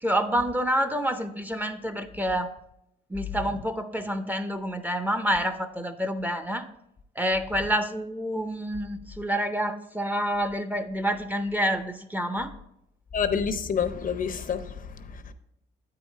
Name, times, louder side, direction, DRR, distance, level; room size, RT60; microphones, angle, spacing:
voice 1, 0.0-2.5 3.1-6.7 7.2-12.5, equal, 10° right, 0.5 m, -28 dB
voice 2, 13.1-15.3, left 6 dB, 45° left, 0.6 m, -28 dB
8.5 x 4.8 x 4.3 m
cardioid pair, 90°, 20 cm